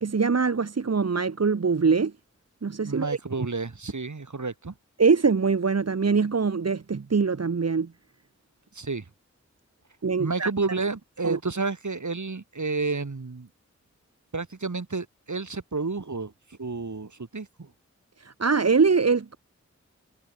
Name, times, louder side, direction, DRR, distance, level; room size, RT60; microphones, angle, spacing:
voice 1, 0.0-2.1 2.6-3.2 5.0-7.9 10.0-10.5 11.2-11.4 18.2-19.4, right 5 dB, 60° right, 1.1 m, -23 dB
voice 2, 2.8-4.7 8.7-9.1 10.2-13.5 14.3-17.7, right 4 dB, 80° right, 6.9 m, -31 dB
wide cardioid pair, 55°, 29 cm